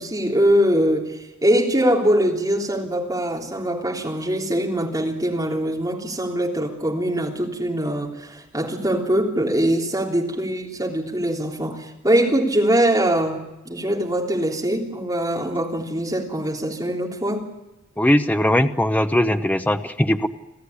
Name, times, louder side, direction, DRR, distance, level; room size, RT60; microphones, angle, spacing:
voice 1, 0.0-17.5, right 1 dB, 15° right, -1 dB, 3.5 m, -22 dB
voice 2, 18.0-20.3, left 1 dB, 5° left, 8 dB, 0.8 m, -19 dB
27.0 x 15.0 x 9.6 m, 0.98 s
head